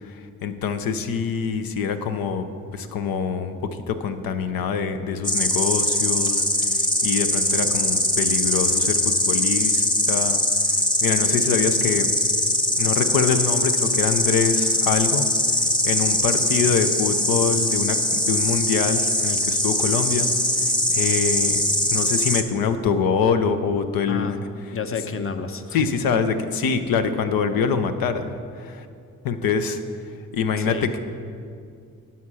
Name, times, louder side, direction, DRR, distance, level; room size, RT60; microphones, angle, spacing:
voice 1, 0.4-2.4 2.7-6.4 7.0-10.4 11.0-12.1 12.8-15.3 15.8-20.3 20.9-21.6 21.9-24.3 25.7-28.8 29.2-29.8 30.3-31.0, left 6 dB, 75° left, 9 dB, 0.7 m, -24 dB
Insect, 5.2-22.4, left 1 dB, 15° left, 1.0 m, -22 dB
voice 2, 24.7-25.9 30.6-30.9, left 5 dB, 40° left, 8 dB, 0.8 m, -30 dB
9.5 x 5.7 x 6.2 m, 2.3 s
supercardioid pair, 45°, 35 cm